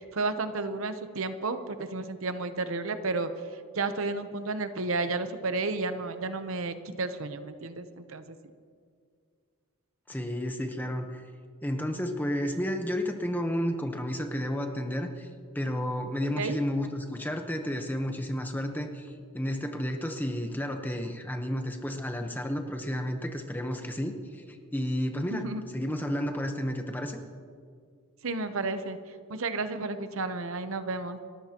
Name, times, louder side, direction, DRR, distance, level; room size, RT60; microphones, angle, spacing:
voice 1, 0.1-3.3 3.7-8.4 16.3-16.6 25.3-25.6 28.2-29.0 29.3-31.2, right 3 dB, 65° right, 9 dB, 0.8 m, -32 dB
voice 2, 10.1-11.2 11.6-15.3 15.5-25.5 25.7-27.2, equal, 10° left, 5 dB, 1.0 m, -32 dB
29.5 x 14.0 x 3.0 m, 2.1 s
head